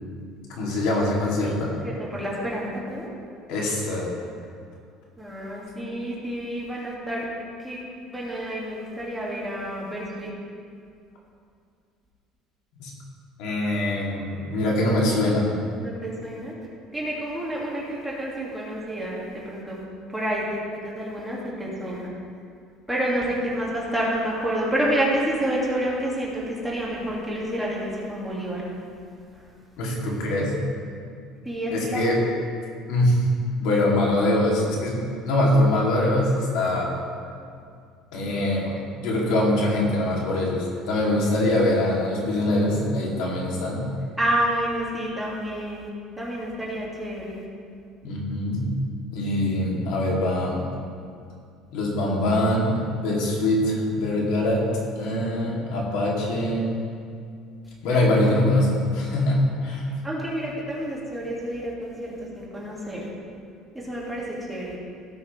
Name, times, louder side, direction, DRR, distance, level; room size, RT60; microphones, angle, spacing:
voice 1, 0.5-1.7 3.5-4.1 5.8-5.9 12.8-12.9 13.4-15.5 29.8-30.6 31.7-32.2 32.9-33.2 33.6-36.9 38.1-38.8 39.0-43.9 48.0-48.7 49.1-50.6 51.7-54.6 55.0-56.7 57.8-59.9, left 1 dB, 75° left, -3 dB, 2.6 m, -23 dB
voice 2, 1.7-3.1 5.2-7.2 7.6-7.8 8.1-10.3 15.8-16.5 16.9-19.8 20.1-22.1 22.9-28.6 31.5-32.0 44.2-45.9 46.2-47.5 60.0-63.1 63.8-64.8, right 1 dB, 5° right, -6 dB, 2.1 m, -29 dB
17.0 x 6.4 x 3.3 m, 2.3 s
cardioid pair, 135°, 0 cm